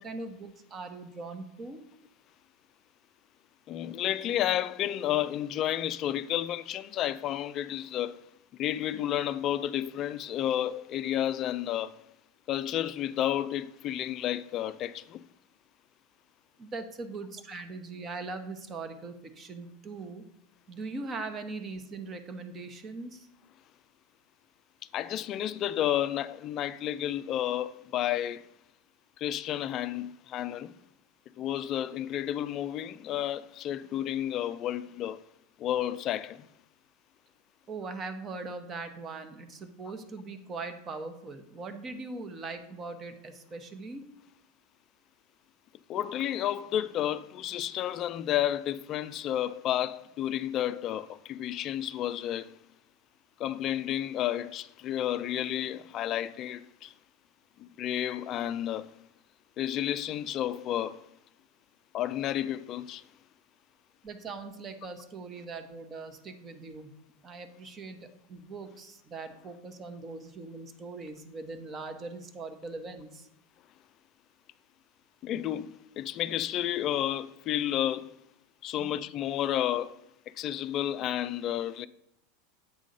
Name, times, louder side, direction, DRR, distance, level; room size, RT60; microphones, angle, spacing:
voice 1, 0.0-1.8 16.6-20.2 20.7-23.3 37.7-44.0 64.0-66.9 67.2-73.3 78.8-79.0, right 3 dB, 30° right, 0.9 m, -41 dB
voice 2, 3.7-8.2 8.6-12.0 12.5-15.2 24.9-28.5 29.2-30.7 31.4-35.2 35.6-36.5 45.9-52.6 53.4-56.9 57.6-58.9 59.6-61.0 61.9-63.0 75.2-78.1 78.6-80.0 80.4-81.9, left 11 dB, 40° left, 0.3 m, -31 dB
8.2 x 3.7 x 5.3 m
figure-of-eight pair, 85°, 0 cm